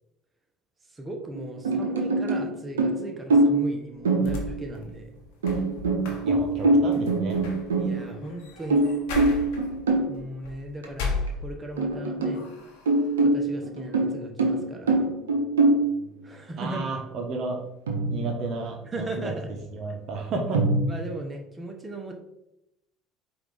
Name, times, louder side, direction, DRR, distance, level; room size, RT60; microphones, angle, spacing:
voice 1, 0.9-5.2 7.8-8.8 10.1-12.4 13.2-14.9 16.2-17.0 18.8-19.5 20.9-22.1, right 1 dB, 25° right, 2 dB, 0.8 m, -37 dB
sound 1, 1.4-2.5 2.8-3.7 4.1-4.7 5.4-8.3 8.7-10.2 10.8-10.9 11.3-11.4 11.8-12.5 12.9-15.9 17.9-18.6 20.5-20.8, right 2 dB, 90° right, 0.6 m, -23 dB
sound 2, 4.0-11.9 12.3-13.1, left 4 dB, 70° left, 0.8 m, -36 dB
voice 2, 6.2-7.4 16.6-17.6 18.1-19.3 19.7-20.6, right 3 dB, 55° right, 2 dB, 0.8 m, -32 dB
4.8 x 2.6 x 3.7 m, 0.85 s
hypercardioid pair, 70°, 0 cm